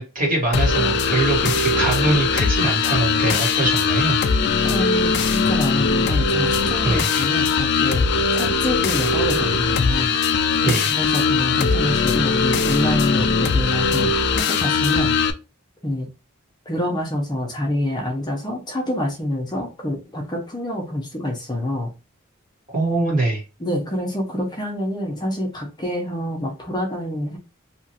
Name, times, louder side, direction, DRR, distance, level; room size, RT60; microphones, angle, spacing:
voice 1, 0.0-4.2 6.8-7.1 10.6-10.9 22.7-23.4, right 2 dB, 40° right, -2 dB, 1.3 m, -22 dB
sound 1, 0.5-15.3, left 5 dB, 50° left, 0.3 m, -20 dB
voice 2, 4.6-8.0 8.3-10.2 10.6-15.1 15.8-16.1 16.7-21.9 23.6-27.4, left 1 dB, 20° left, -1 dB, 0.7 m, -26 dB
2.8 x 2.5 x 2.8 m, 0.29 s
head